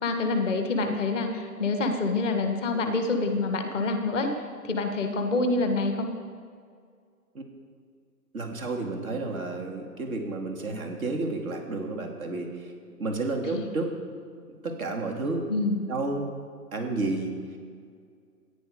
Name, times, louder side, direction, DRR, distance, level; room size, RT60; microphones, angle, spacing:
voice 1, 0.0-4.3 4.6-6.1 13.4-13.7 15.5-15.9, left 3 dB, 5° right, 5 dB, 0.6 m, -27 dB
voice 2, 8.3-12.7 13.0-13.9 14.3-15.5 15.9-16.3 16.7-17.3, right 3 dB, 60° right, 3 dB, 2.4 m, -31 dB
14.5 x 9.5 x 5.0 m, 2.1 s
hypercardioid pair, 145°, 48 cm